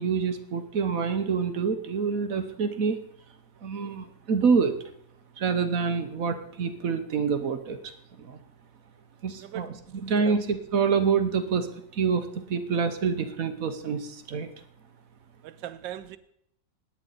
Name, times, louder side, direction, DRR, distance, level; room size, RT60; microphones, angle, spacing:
voice 1, 0.0-3.0 3.6-4.7 5.4-7.8 8.3-8.4 9.2-11.7 11.9-14.5, right 5 dB, 55° right, 1.2 m, -26 dB
voice 2, 9.4-9.7 10.2-10.4 15.4-16.2, right 12 dB, 85° right, 1.4 m, -39 dB
17.5 x 9.9 x 4.0 m
omnidirectional pair, 2.0 m